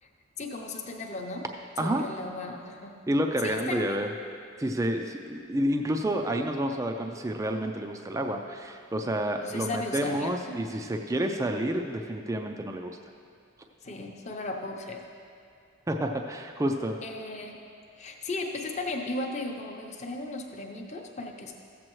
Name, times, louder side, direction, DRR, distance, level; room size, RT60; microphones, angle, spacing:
voice 1, 0.4-1.4 1.8-2.9 3.4-4.0 9.4-10.7 13.8-15.0 17.0-17.6 18.0-21.5, left 2 dB, 30° left, 2 dB, 0.7 m, -36 dB
voice 2, 1.8-2.1 3.1-4.1 4.6-13.0 15.9-17.0, right 1 dB, 15° right, 4 dB, 0.3 m, -29 dB
14.5 x 7.5 x 3.1 m, 2.4 s
head